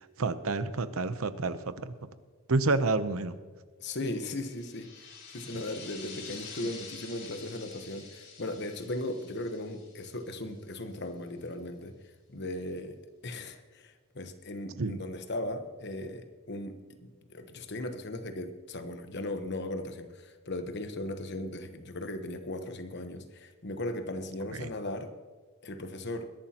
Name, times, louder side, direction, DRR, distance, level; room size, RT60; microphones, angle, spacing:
voice 1, 0.2-1.9 2.5-3.3 14.8-15.0 24.5-24.7, right 3 dB, 80° right, 12 dB, 0.8 m, -29 dB
voice 2, 3.8-11.9 12.3-13.0 13.2-25.1 25.6-26.3, left 1 dB, 50° left, 7 dB, 1.1 m, -37 dB
sound 1, 4.5-10.8, left 5 dB, 70° left, 4.7 m, -48 dB
21.5 x 11.5 x 3.0 m, 1.4 s
head